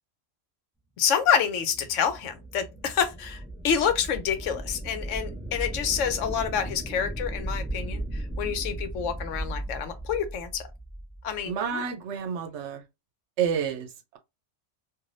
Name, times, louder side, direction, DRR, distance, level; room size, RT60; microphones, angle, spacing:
voice 1, 1.0-10.7 11.2-11.8, left 8 dB, 80° left, 1.0 m, -28 dB
sound 1, 1.4-11.5, right 1 dB, ahead, 0.4 m, -36 dB
voice 2, 11.4-12.8 13.4-13.9, right 7 dB, 75° right, 0.9 m, -29 dB
3.2 x 2.6 x 2.5 m
omnidirectional pair, 1.3 m